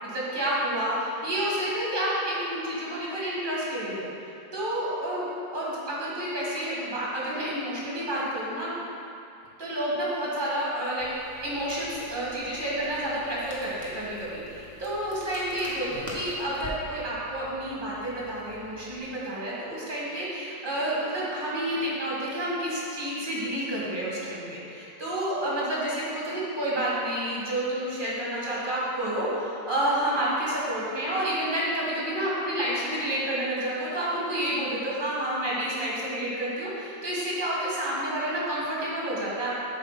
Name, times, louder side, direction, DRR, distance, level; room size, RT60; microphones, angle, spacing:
voice 1, 0.0-8.7 9.6-11.1 11.4-39.5, right 1 dB, 30° right, -6 dB, 1.8 m, -29 dB
Crackle, 11.0-19.0, left 1 dB, 10° left, 1.0 m, -45 dB
7.9 x 4.1 x 5.8 m, 2.7 s
omnidirectional pair, 1.9 m